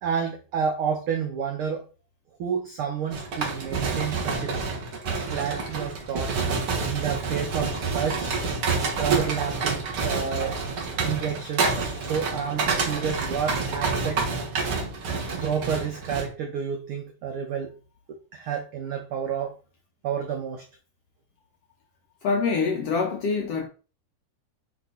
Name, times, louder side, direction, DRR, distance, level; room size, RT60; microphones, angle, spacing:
voice 1, 0.0-1.8 2.4-4.6 5.3-6.3 6.9-8.3 9.0-10.6 11.0-14.2 15.2-17.7 18.1-19.6 20.0-20.6, right 7 dB, 90° right, 1.1 m, -30 dB
sound 1, 3.1-16.3, right 4 dB, 50° right, 2.0 m, -28 dB
voice 2, 22.2-23.7, left 4 dB, 75° left, 1.4 m, -25 dB
8.7 x 2.9 x 4.0 m
omnidirectional pair, 3.6 m